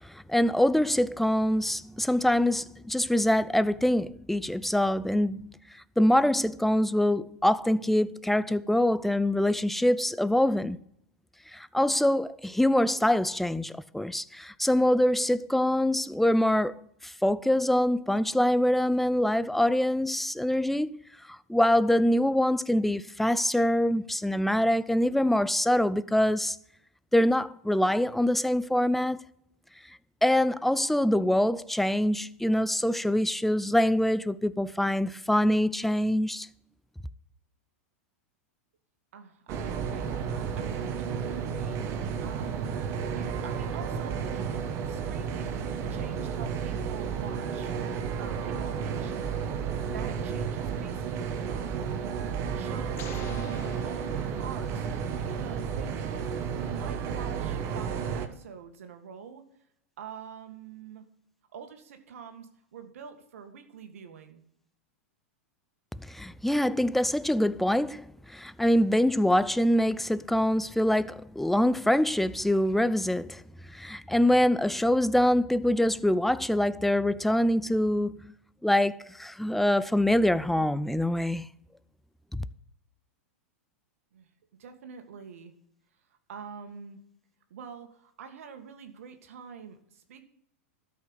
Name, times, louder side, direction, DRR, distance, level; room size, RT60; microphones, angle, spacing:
voice 1, 0.0-5.5 6.0-10.8 11.5-21.0 21.3-26.6 27.1-29.2 30.2-36.5 66.0-73.4 73.7-78.2 78.6-81.5 82.3-82.4, left 1 dB, ahead, 0.5 m, -25 dB
voice 2, 39.1-42.8 43.2-44.6 44.9-47.7 48.2-49.5 49.9-59.4 60.0-61.0 61.5-64.4 84.1-84.3 84.6-85.5 86.3-87.0 87.5-90.2, right 7 dB, 70° right, 1.9 m, -46 dB
sound 1, 39.5-58.3, right 7 dB, 40° right, 1.5 m, -32 dB
sound 2, 53.0-54.8, left 9 dB, 35° left, 1.1 m, -48 dB
13.0 x 5.6 x 8.0 m
hypercardioid pair, 110°, 8 cm